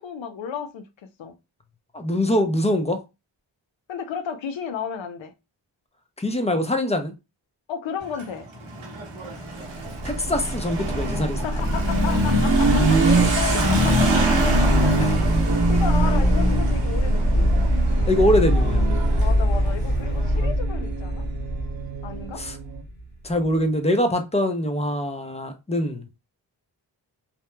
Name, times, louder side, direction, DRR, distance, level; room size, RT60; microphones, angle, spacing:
voice 1, 0.0-1.3 3.9-5.3 7.7-8.5 11.4-14.9 15.7-17.5 19.2-21.2 22.0-22.4, left 7 dB, 80° left, 0.6 m, -33 dB
voice 2, 1.9-3.0 6.2-7.1 10.0-11.5 15.0-15.3 18.1-18.9 20.3-20.6 22.4-22.6 23.2-26.1, left 1 dB, 15° left, 0.5 m, -23 dB
Motorcycle / Accelerating revving vroom, 8.0-20.3, right 2 dB, 90° right, 0.9 m, -24 dB
sound 1, 9.7-22.8, right 9 dB, 50° right, 0.5 m, -40 dB
sound 2, 9.8-23.5, equal, 55° left, 1.5 m, -23 dB
2.8 x 2.1 x 2.2 m
cardioid pair, 45°, 45 cm